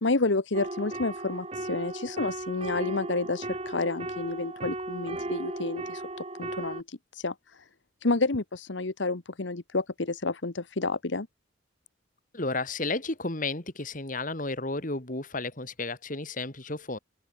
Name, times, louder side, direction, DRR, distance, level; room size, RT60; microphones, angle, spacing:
voice 1, 0.0-6.0 6.4-7.3 8.0-11.3, left 3 dB, 75° left, 1.2 m, -30 dB
sound 1, 0.5-6.8, right 2 dB, 30° right, 2.4 m, -36 dB
voice 2, 12.3-17.0, left 3 dB, 45° left, 2.6 m, -32 dB
open air
head